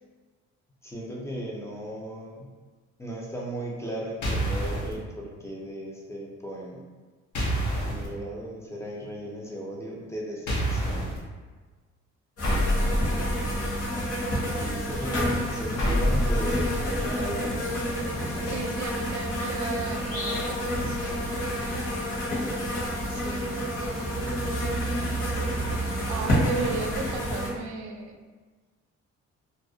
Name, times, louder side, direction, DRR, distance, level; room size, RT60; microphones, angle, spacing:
voice 1, 0.8-2.5 3.0-6.8 7.9-11.1 14.5-18.6 25.8-26.1, right 1 dB, 10° left, -3 dB, 0.5 m, -37 dB
sound 1, 4.2-4.9 7.3-8.1 10.5-11.2 12.4-13.8 15.8-17.2, equal, 75° left, 0.7 m, -27 dB
sound 2, 12.4-27.5, equal, 50° left, 1.0 m, -29 dB
voice 2, 18.4-21.0 23.1-23.4 26.0-28.2, right 4 dB, 70° right, 3 dB, 0.4 m, -35 dB
2.4 x 2.0 x 2.6 m, 1.4 s
cardioid pair, 90°, 30 cm